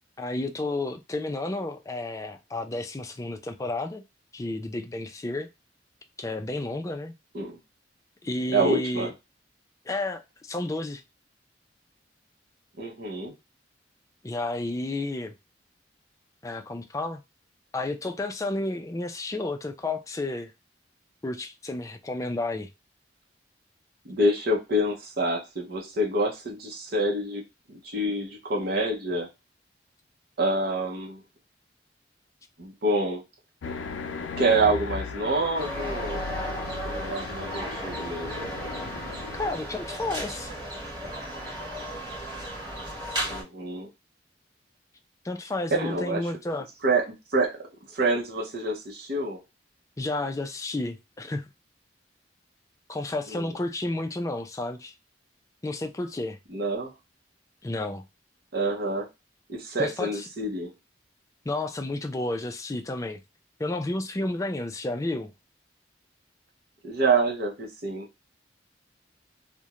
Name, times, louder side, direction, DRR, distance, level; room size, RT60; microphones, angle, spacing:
voice 1, 0.2-4.0 4.3-5.5 6.2-7.1 8.2-9.1 9.9-11.0 14.2-15.3 16.4-17.2 17.7-20.5 21.2-22.7 39.3-40.5 45.2-46.7 50.0-51.5 52.9-54.9 55.6-56.4 57.6-58.0 59.8-60.3 61.5-63.2 63.6-65.3, left 2 dB, 15° left, 0.3 m, -31 dB
voice 2, 8.5-9.1 12.8-13.3 24.0-27.4 27.7-29.3 30.4-31.2 32.6-33.2 34.4-36.2 36.8-38.5 43.3-43.9 45.7-46.2 46.8-49.4 53.3-53.5 56.5-56.9 58.5-59.1 59.5-60.7 66.8-68.1, right 2 dB, 55° right, 0.7 m, -27 dB
sound 1, 33.6-39.5, left 4 dB, 90° left, 0.4 m, -36 dB
sound 2, 35.5-43.4, equal, 25° right, 1.2 m, -35 dB
2.4 x 2.1 x 2.8 m
head